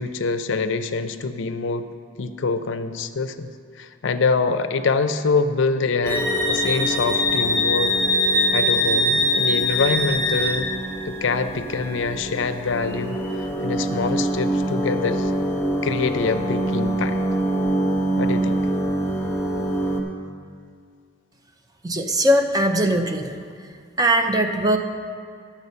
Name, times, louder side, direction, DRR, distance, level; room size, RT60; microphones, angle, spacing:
voice 1, 0.0-1.9 2.2-3.5 3.8-7.9 8.5-10.7 11.1-13.2 13.6-15.3 15.8-17.2 18.2-18.6, left 4 dB, 65° left, 10 dB, 0.5 m, -25 dB
sound 1, 6.0-20.0, right 1 dB, 10° left, 0.9 m, -26 dB
Wind instrument woodwind instrument, 6.1-10.6, left 1 dB, 45° right, 2.3 m, -22 dB
voice 2, 21.8-23.4 24.0-24.8, right 1 dB, 20° right, 5 dB, 0.5 m, -20 dB
11.0 x 7.2 x 5.5 m, 2.2 s
head